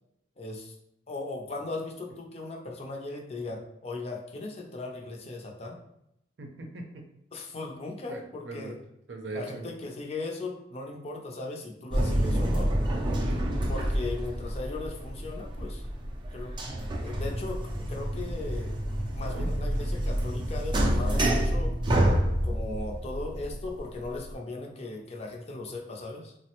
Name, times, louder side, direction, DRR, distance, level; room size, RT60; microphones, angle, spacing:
voice 1, 0.4-0.7 1.1-5.8 7.3-8.8 9.3-12.7 13.7-15.9 16.3-16.5 17.0-18.8 19.1-21.8 22.4-26.3, left 2 dB, 35° left, 1 dB, 0.5 m, -38 dB
voice 2, 6.4-7.1 8.1-8.8 9.1-9.7 13.1-13.4 19.2-19.5, right 2 dB, 80° right, 2 dB, 0.5 m, -39 dB
sound 1, 11.9-24.3, right 1 dB, 25° right, 0.4 m, -28 dB
3.2 x 2.0 x 2.9 m, 0.80 s
head